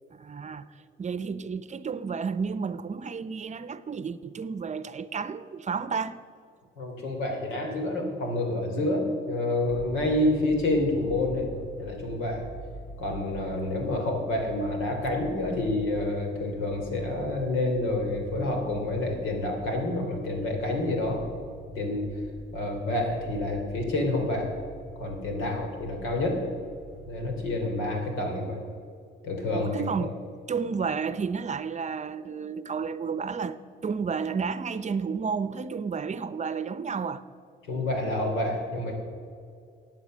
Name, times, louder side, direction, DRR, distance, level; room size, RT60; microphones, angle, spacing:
voice 1, 0.1-0.7 1.0-6.2 29.5-30.1 30.5-37.2, right 5 dB, 35° right, 0.7 m, -31 dB
voice 2, 6.8-11.5 11.8-12.5 13.0-21.2 21.7-22.1 22.5-24.6 24.9-26.4 27.1-28.6 29.2-29.7 37.7-38.9, left 2 dB, 90° left, 3.1 m, -28 dB
sound 1, 9.7-27.5, right 1 dB, 65° left, 2.9 m, -45 dB
15.5 x 9.3 x 6.3 m
cardioid pair, 90°, 20 cm